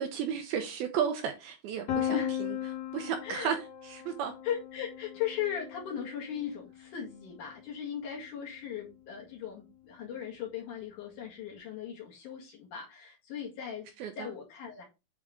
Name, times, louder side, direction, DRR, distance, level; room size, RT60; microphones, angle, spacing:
voice 1, 0.0-2.5 2.9-3.6 3.8-4.3 14.0-14.3, right 8 dB, 75° right, 2.4 m, -33 dB
Piano, 1.9-7.7, left 10 dB, 80° left, 1.4 m, -37 dB
voice 2, 3.2-3.6 4.4-13.9 14.2-14.8, left 8 dB, 55° left, 3.0 m, -38 dB
8.7 x 4.7 x 3.6 m
omnidirectional pair, 4.9 m